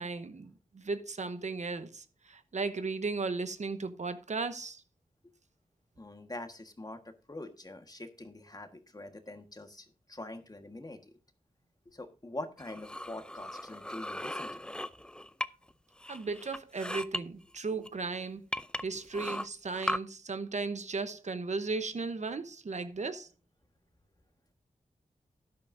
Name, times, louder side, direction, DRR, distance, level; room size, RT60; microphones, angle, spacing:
voice 1, 0.0-4.8 16.1-18.4 18.8-23.3, right 4 dB, 55° right, 0.9 m, -36 dB
voice 2, 6.0-11.1 11.9-14.7, left 2 dB, 25° left, 1.5 m, -44 dB
sound 1, 12.6-15.7 16.0-17.2 17.8-17.9 18.5-20.0, left 1 dB, 5° left, 0.5 m, -37 dB
12.5 x 10.5 x 2.6 m
cardioid pair, 60°, 14 cm